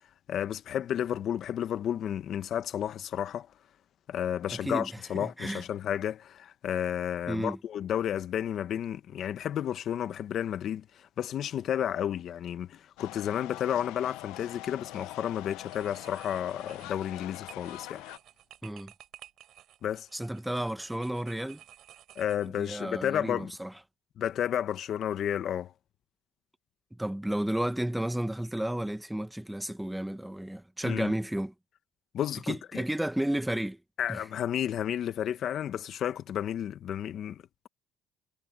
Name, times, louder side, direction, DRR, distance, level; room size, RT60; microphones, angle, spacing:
voice 1, 0.3-3.5 4.1-18.0 19.8-20.1 22.2-23.5 24.2-25.7 30.8-31.1 32.1-32.8 34.0-37.7, left 10 dB, 50° left, 1.1 m, -32 dB
voice 2, 4.5-5.6 7.3-7.6 18.6-18.9 20.1-21.6 22.6-23.7 27.0-31.5 32.5-33.8 34.1-34.2, right 1 dB, 5° right, 1.1 m, -32 dB
sound 1, 13.0-18.2, left 18 dB, 85° left, 0.8 m, -44 dB
sound 2, 14.8-15.2 15.6-22.8, right 12 dB, 55° right, 3.8 m, -54 dB
cardioid pair, 130°, 0 cm